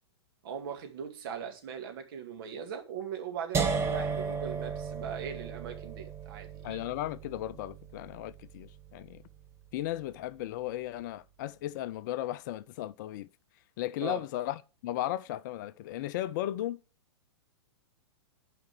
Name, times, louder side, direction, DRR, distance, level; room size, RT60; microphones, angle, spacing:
voice 1, 0.4-6.8 14.0-14.2, right 7 dB, 55° right, 2.2 m, -40 dB
sound 1, 3.5-9.5, right 5 dB, 20° right, 1.5 m, -35 dB
voice 2, 6.6-9.2 9.7-13.3 13.8-16.8, left 14 dB, 45° left, 0.5 m, -35 dB
9.5 x 5.0 x 6.2 m
figure-of-eight pair, 110°, 14 cm